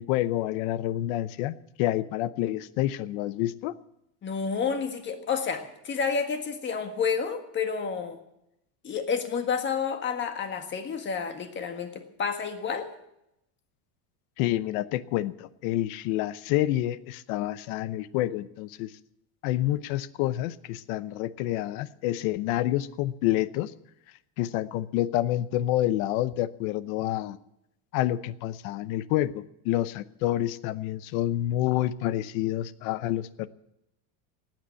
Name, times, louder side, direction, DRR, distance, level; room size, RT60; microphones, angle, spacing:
voice 1, 0.0-3.7 14.4-18.9 19.4-23.7 24.4-27.4 27.9-33.5, left 14 dB, 65° left, 16 dB, 0.8 m, -28 dB
voice 2, 4.2-8.2 8.8-12.9, left 6 dB, 25° left, 7 dB, 1.6 m, -30 dB
17.5 x 9.2 x 8.2 m, 0.84 s
cardioid pair, 160°, 45 cm